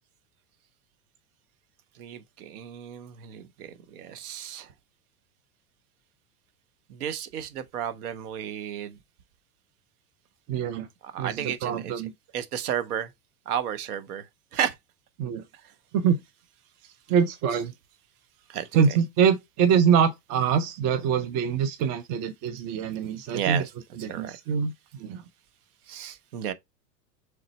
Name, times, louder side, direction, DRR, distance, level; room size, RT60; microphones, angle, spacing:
voice 1, 2.0-4.7 6.9-9.0 11.0-11.9 12.3-13.1 13.5-14.8 15.6-15.7 17.5-17.6 18.5-19.1 23.1-23.7 24.1-24.4 25.9-26.5, right 9 dB, 75° right, 0.8 m, -33 dB
voice 2, 10.5-10.9 11.2-12.1 15.2-15.4 15.9-16.2 17.1-17.7 18.7-23.6 24.0-24.7 25.0-25.2, right 7 dB, 35° right, 0.5 m, -24 dB
3.8 x 3.3 x 4.0 m
hypercardioid pair, 100°, 46 cm